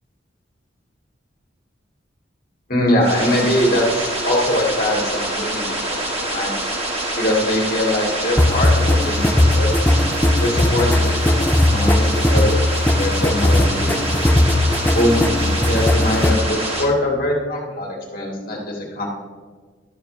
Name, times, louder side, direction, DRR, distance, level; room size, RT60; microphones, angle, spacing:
voice 1, 2.7-6.7 7.2-9.7 10.4-14.1 14.9-19.1, left 1 dB, 50° left, -2 dB, 2.7 m, -22 dB
sound 1, 3.0-16.8, right 1 dB, 35° right, 2.0 m, -25 dB
sound 2, 8.4-16.4, left 1 dB, 10° left, 0.4 m, -18 dB
13.0 x 7.4 x 3.4 m, 1.5 s
head